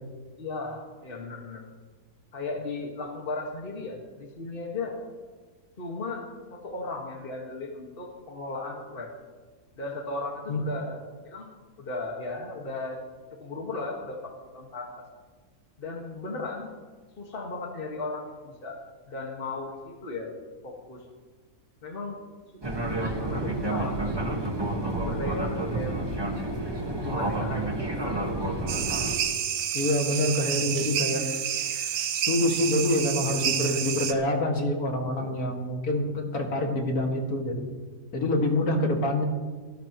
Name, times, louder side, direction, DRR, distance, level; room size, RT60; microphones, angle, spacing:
voice 1, 0.4-1.6 2.3-5.0 5.8-9.1 9.8-11.5 11.8-13.0 13.3-15.1 15.8-16.7 17.2-18.8 19.1-20.3 20.6-21.1 21.8-22.2 23.1-24.5 25.0-26.0 26.9-28.3 35.2-35.3, left 3 dB, 35° left, 0 dB, 1.8 m, -36 dB
Fixed-wing aircraft airplane, 22.6-29.2, right 2 dB, 15° right, 1.4 m, -29 dB
sound 1, 28.7-34.1, right 9 dB, 75° right, 1.3 m, -29 dB
voice 2, 29.7-31.2 32.2-37.7 38.1-39.2, left 1 dB, 75° left, 1 dB, 2.5 m, -26 dB
25.0 x 12.5 x 3.1 m, 1.4 s
omnidirectional pair, 1.6 m